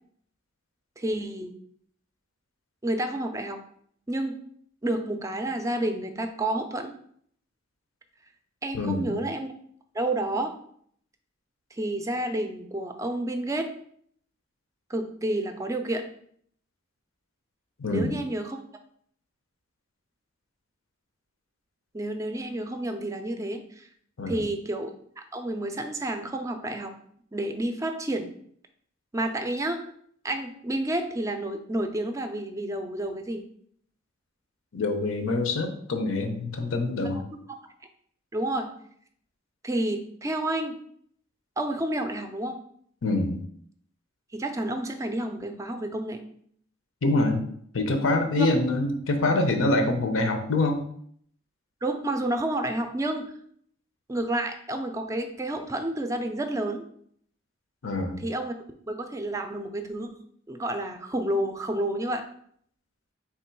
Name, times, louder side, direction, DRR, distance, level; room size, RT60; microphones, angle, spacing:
voice 1, 1.0-1.5 2.8-3.6 4.1-4.3 4.8-6.9 8.6-9.5 9.9-10.5 11.7-13.7 14.9-16.0 17.9-18.6 21.9-23.9 24.3-24.9 25.2-27.0 27.3-28.3 29.1-29.8 30.2-33.4 37.1-37.2 38.3-38.7 39.6-40.7 41.6-42.6 44.3-46.2 48.4-48.5 51.8-53.3 54.1-56.9 58.2-58.5 58.9-60.1 60.5-62.3, right 1 dB, 15° right, 6 dB, 0.4 m, -30 dB
voice 2, 8.7-9.2 17.8-18.1 24.2-24.4 34.7-37.2 43.0-43.4 47.0-47.4 47.7-50.8 57.8-58.2, left 2 dB, 85° left, 5 dB, 0.7 m, -25 dB
3.6 x 3.0 x 4.5 m, 0.64 s
head